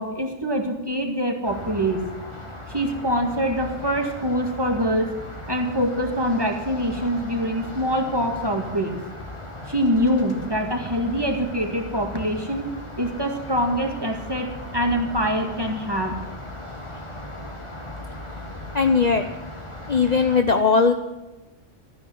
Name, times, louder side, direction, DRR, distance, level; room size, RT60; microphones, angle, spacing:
voice 1, 0.0-2.0 2.7-5.1 5.5-8.9 9.7-12.7 13.0-16.2, equal, 20° right, 3 dB, 2.1 m, -24 dB
sound 1, 1.4-20.4, left 1 dB, 25° left, 2.1 m, -37 dB
voice 2, 18.7-19.2 19.9-20.9, left 4 dB, 40° left, 6 dB, 0.8 m, -18 dB
13.5 x 9.6 x 7.8 m, 1.1 s
omnidirectional pair, 1.2 m